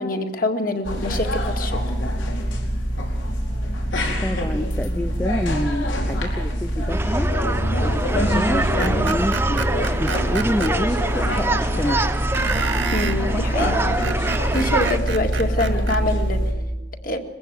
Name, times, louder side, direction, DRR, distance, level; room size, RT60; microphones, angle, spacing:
voice 1, 0.0-1.8 12.9-14.1 14.5-16.5 17.0-17.2, left 1 dB, 50° left, 5 dB, 2.1 m, -25 dB
sound 1, 0.8-16.5, equal, 90° left, 4.7 m, -24 dB
voice 2, 4.2-7.3 7.8-9.7 10.0-12.0, left 1 dB, 10° left, 8 dB, 0.6 m, -27 dB
sound 2, 6.9-15.0, right 2 dB, 10° right, 0.9 m, -25 dB
Screech, 8.8-10.7 12.3-13.2 13.8-16.0, right 4 dB, 80° right, 2.0 m, -29 dB
22.5 x 15.5 x 9.4 m, 1.1 s
head